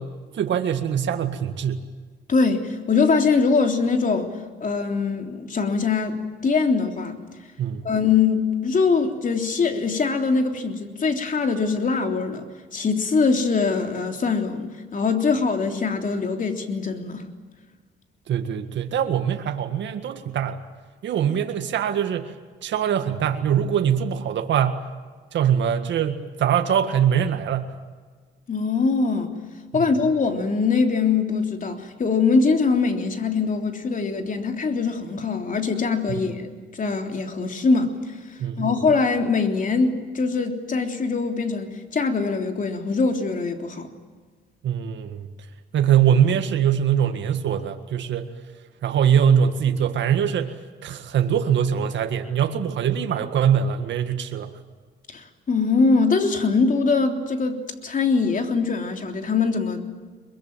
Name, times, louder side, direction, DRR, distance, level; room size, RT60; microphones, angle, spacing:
voice 1, 0.0-1.9 7.6-7.8 18.3-20.6 21.0-22.3 22.6-24.8 25.3-27.7 29.7-29.9 36.1-36.2 38.4-38.7 44.6-45.3 45.7-48.3 48.8-50.5 50.8-54.5, right 8 dB, 65° right, 6 dB, 1.8 m, -22 dB
voice 2, 2.3-4.3 4.6-7.2 7.8-12.5 12.7-17.2 28.5-29.3 29.7-38.2 38.6-43.9 55.1-59.9, left 4 dB, 40° left, 5 dB, 3.4 m, -22 dB
23.0 x 22.5 x 9.1 m, 1.5 s
cardioid pair, 90°, 20 cm